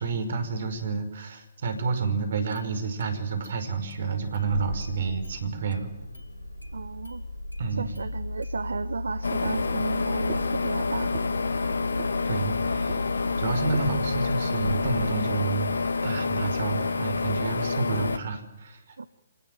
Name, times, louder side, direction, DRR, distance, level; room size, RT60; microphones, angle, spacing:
voice 1, 0.0-5.9 7.6-7.9 12.2-13.0 13.4-18.8, right 4 dB, 55° right, 9 dB, 5.3 m, -30 dB
Engine starting, 2.0-2.1 2.5-3.1 3.4-3.5 3.9-15.8, left 2 dB, 90° left, 3.3 m, -36 dB
voice 2, 6.7-7.2 7.7-11.1 19.0-19.1, right 4 dB, 70° right, 14 dB, 1.2 m, -34 dB
sound 1, 9.2-18.2, left 4 dB, 70° left, 1.9 m, -28 dB
sound 2, 9.4-14.3, right 11 dB, 35° right, 2.3 m, -43 dB
26.5 x 19.0 x 9.0 m, 0.96 s
figure-of-eight pair, 130°, 0 cm